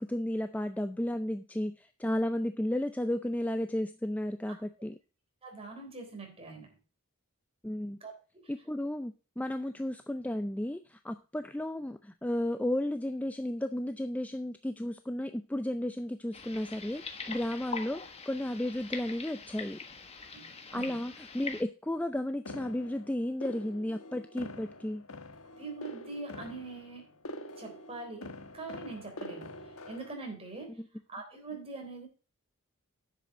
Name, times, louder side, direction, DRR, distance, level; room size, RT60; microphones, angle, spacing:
voice 1, 0.0-4.9 7.6-8.0 8.5-19.8 20.7-25.0, left 1 dB, 5° left, 8 dB, 0.4 m, -33 dB
voice 2, 5.4-6.8 8.0-8.5 20.3-21.0 25.6-27.1 27.6-30.8 31.1-32.1, right 3 dB, 25° right, 3 dB, 3.6 m, -43 dB
sound 1, 16.3-21.6, left 5 dB, 30° left, 1.3 m, -43 dB
sound 2, 22.5-30.1, left 1 dB, 65° left, 1.3 m, -45 dB
10.0 x 7.7 x 3.8 m, 0.34 s
head